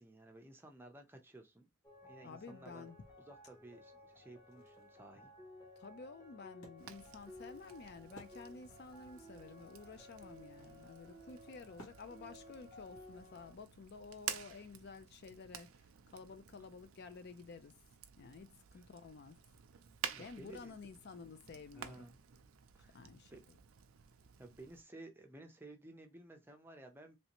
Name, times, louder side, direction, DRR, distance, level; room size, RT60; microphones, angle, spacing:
voice 1, 0.0-1.7 2.0-2.9 3.3-5.3 20.1-20.8 21.7-22.1 22.7-23.0 23.3-23.4 24.4-27.2, right 2 dB, 10° right, 0.5 m, -55 dB
sound 1, 1.8-13.5, left 1 dB, 15° left, 0.8 m, -57 dB
voice 2, 2.2-3.0 5.8-17.7 18.2-19.4 20.2-22.0 22.9-23.3, left 4 dB, 50° left, 0.4 m, -52 dB
Wood, 4.5-8.9 9.2-9.3 9.5-13.8, right 1 dB, 85° left, 1.3 m, -62 dB
Fire, 6.8-24.8, right 9 dB, 75° right, 0.4 m, -51 dB
3.2 x 2.7 x 2.9 m
head